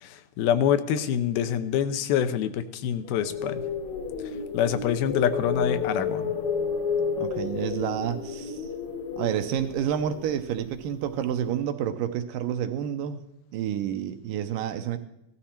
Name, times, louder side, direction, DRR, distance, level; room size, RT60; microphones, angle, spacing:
voice 1, 0.0-3.6 4.5-6.3, left 9 dB, 80° left, 10 dB, 2.6 m, -26 dB
sound 1, 3.1-11.1, left 5 dB, 60° left, 2.3 m, -31 dB
voice 2, 7.2-8.6 9.2-13.2 13.5-15.0, right 10 dB, 75° right, 8 dB, 2.2 m, -29 dB
16.5 x 13.0 x 4.3 m, 0.87 s
omnidirectional pair, 4.3 m